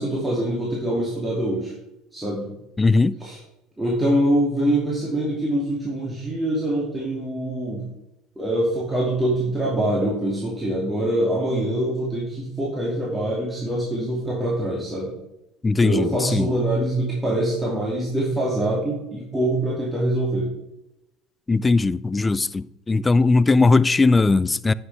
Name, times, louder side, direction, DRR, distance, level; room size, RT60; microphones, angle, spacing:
voice 1, 0.0-1.7 2.1-2.5 3.2-3.4 3.8-7.8 8.4-15.1 15.8-20.5, right 1 dB, 15° right, 2.6 m, -24 dB
voice 2, 2.8-3.2 15.6-16.5 21.5-24.7, left 3 dB, 20° left, 0.3 m, -19 dB
9.4 x 6.5 x 3.5 m
hypercardioid pair, 80°, 0 cm